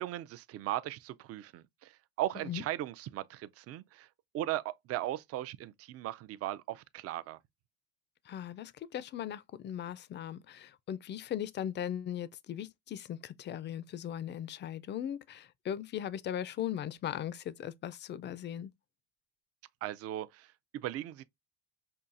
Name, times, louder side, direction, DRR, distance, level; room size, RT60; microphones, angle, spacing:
voice 1, 0.0-4.1 4.3-7.4 19.8-21.2, right 14 dB, 45° right, 0.4 m, -38 dB
voice 2, 8.3-18.7, left 10 dB, 35° left, 0.4 m, -38 dB
5.5 x 2.3 x 2.5 m
cardioid pair, 110°, 34 cm